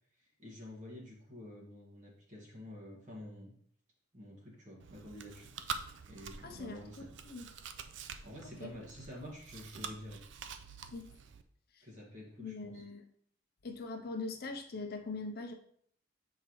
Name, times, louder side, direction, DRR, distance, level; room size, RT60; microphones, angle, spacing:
voice 1, 0.2-3.5 4.1-5.5 6.1-7.2 8.2-10.2 11.8-12.8, left 1 dB, 35° right, -3 dB, 1.6 m, -49 dB
Chewing mastication, 4.8-11.4, right 6 dB, 60° right, 0.4 m, -46 dB
voice 2, 6.4-6.9 7.2-7.5 8.6-8.7 10.9-11.1 11.7-11.8 12.4-13.0 13.6-15.5, left 3 dB, 45° left, 4 dB, 0.6 m, -42 dB
7.8 x 4.6 x 3.0 m, 0.65 s
head